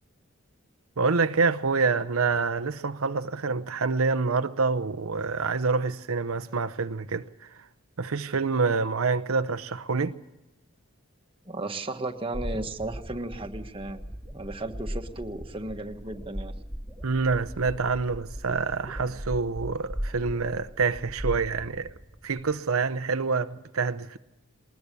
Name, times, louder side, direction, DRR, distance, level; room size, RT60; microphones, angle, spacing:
voice 1, 1.0-7.7 8.0-10.1 17.0-21.9 22.2-24.2, right 4 dB, 85° right, 0.8 m, -27 dB
voice 2, 11.4-14.0 14.3-16.5, right 2 dB, 25° right, 1.4 m, -35 dB
sound 1, 12.3-22.5, equal, 10° left, 2.7 m, -38 dB
20.5 x 20.5 x 6.9 m
head